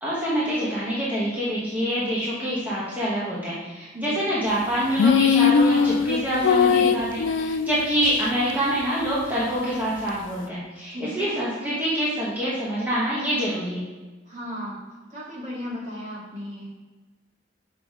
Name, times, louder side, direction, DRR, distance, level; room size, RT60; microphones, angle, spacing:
voice 1, 0.0-13.8, equal, 10° right, -9 dB, 1.3 m, -26 dB
sound 1, 5.0-8.2, left 6 dB, 80° left, 0.3 m, -20 dB
voice 2, 10.9-11.3 14.3-16.7, equal, 40° right, -5 dB, 2.2 m, -35 dB
6.9 x 5.9 x 3.7 m, 1.2 s
head